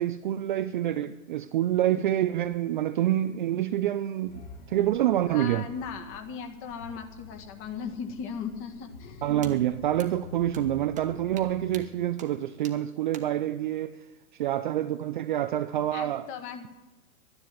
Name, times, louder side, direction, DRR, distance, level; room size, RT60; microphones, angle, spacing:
voice 1, 0.0-5.7 9.2-13.9 14.3-16.3, right 12 dB, 35° right, 0.4 m, -27 dB
sound 1, 4.2-11.7, left 3 dB, 65° left, 3.0 m, -47 dB
voice 2, 5.3-9.3 15.9-16.7, left 6 dB, 30° left, 1.7 m, -38 dB
sound 2, 9.4-9.5 10.0-10.1 10.5-10.6 10.9-11.1 11.4-11.5 11.7-11.8 12.2-12.3 12.6-12.7 13.1-13.2, right 9 dB, 15° right, 1.2 m, -44 dB
11.5 x 10.5 x 9.3 m
hypercardioid pair, 135°, 44 cm